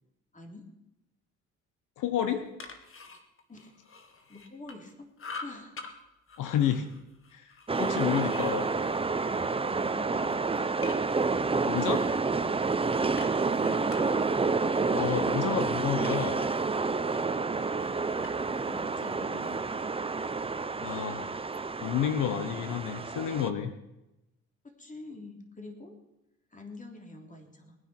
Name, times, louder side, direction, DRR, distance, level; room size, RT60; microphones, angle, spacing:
voice 1, 0.3-0.6 3.5-3.7 4.3-5.1 5.4-5.8 9.9-10.3 13.4-14.1 14.6-15.2 18.4-19.6 24.8-25.9 26.5-27.8, left 2 dB, 25° left, 3 dB, 3.4 m, -46 dB
voice 2, 2.0-2.4 6.4-6.9 7.3-7.5 7.8-8.7 11.7-12.1 14.9-16.4 20.8-21.4 21.8-23.7, left 9 dB, 85° left, 9 dB, 1.2 m, -30 dB
sound 1, 2.4-4.9 5.2-5.9 6.3-9.8 10.2-11.3 11.8-16.7 17.0-19.7, left 4 dB, 45° left, 2.0 m, -48 dB
sound 2, 7.7-23.5, right 4 dB, 20° right, 0.8 m, -29 dB
20.0 x 9.7 x 6.1 m, 0.93 s
cardioid pair, 90°, 30 cm